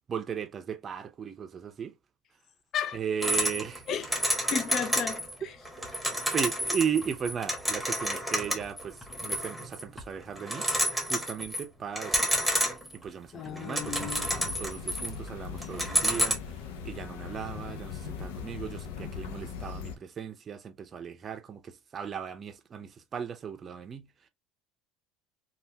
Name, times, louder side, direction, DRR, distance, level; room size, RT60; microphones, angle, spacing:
voice 1, 0.1-1.9 2.9-3.9 5.4-5.5 6.3-10.7 11.1-12.5 12.9-16.4 16.8-24.1, right 7 dB, 30° right, 0.6 m, -36 dB
sound 1, 3.2-5.3 5.6-10.0 10.4-11.6 12.0-13.0 13.4-15.3 15.6-16.3, equal, ahead, 1.0 m, -29 dB
voice 2, 4.5-5.2 13.3-14.2, left 7 dB, 45° left, 0.6 m, -33 dB
sound 2, 13.8-20.0, left 6 dB, 90° left, 0.6 m, -40 dB
3.3 x 2.4 x 2.8 m
supercardioid pair, 115°, 0 cm